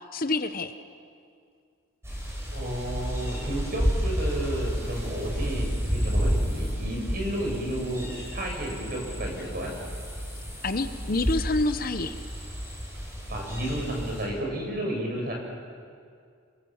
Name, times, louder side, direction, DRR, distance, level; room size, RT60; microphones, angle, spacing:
voice 1, 0.1-0.7 10.6-12.2, left 2 dB, 40° left, 10 dB, 0.8 m, -27 dB
sound 1, 2.0-14.3, equal, 10° right, 6.2 m, -31 dB
voice 2, 2.5-9.7 13.3-15.3, right 1 dB, 45° right, 0 dB, 6.4 m, -32 dB
28.5 x 21.5 x 7.2 m, 2.3 s
head